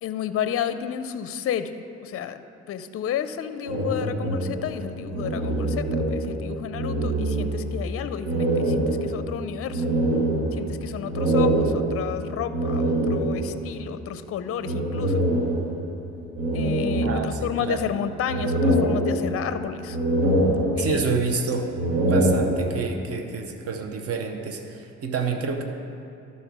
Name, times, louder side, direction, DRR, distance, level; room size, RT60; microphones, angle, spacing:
voice 1, 0.0-1.7 2.0-2.4 2.7-9.8 10.5-15.2 16.5-20.0 20.7-21.1, left 8 dB, 50° left, 11 dB, 0.5 m, -31 dB
sound 1, 3.6-6.5 6.7-7.8 8.2-13.7 14.6-15.9 16.4-17.7 18.1-19.6 19.9-21.2 21.6-23.0, right 1 dB, 90° right, 1.4 m, -24 dB
voice 2, 20.8-21.7 22.0-25.6, right 5 dB, 50° right, 4 dB, 0.9 m, -28 dB
12.5 x 4.1 x 6.0 m, 2.8 s
cardioid pair, 90°, 30 cm